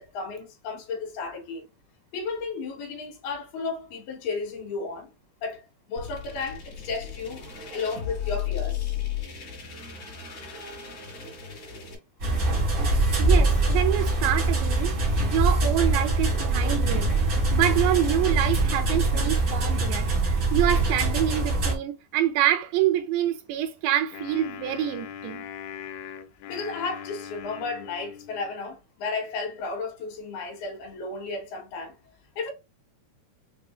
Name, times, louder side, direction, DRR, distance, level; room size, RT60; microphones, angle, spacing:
voice 1, 0.0-1.7 2.1-5.1 5.4-7.4 7.7-9.0 26.5-31.9 32.4-32.5, left 4 dB, 70° left, 2.8 m, -33 dB
sound 1, 6.0-12.0, left 10 dB, 40° left, 2.0 m, -35 dB
sound 2, 12.2-21.8, right 2 dB, 65° right, 1.4 m, -23 dB
voice 2, 13.2-15.0 15.2-25.4, right 11 dB, 80° right, 2.8 m, -26 dB
Wind instrument woodwind instrument, 24.1-28.6, left 9 dB, 90° left, 2.2 m, -40 dB
6.8 x 2.5 x 2.4 m
omnidirectional pair, 5.0 m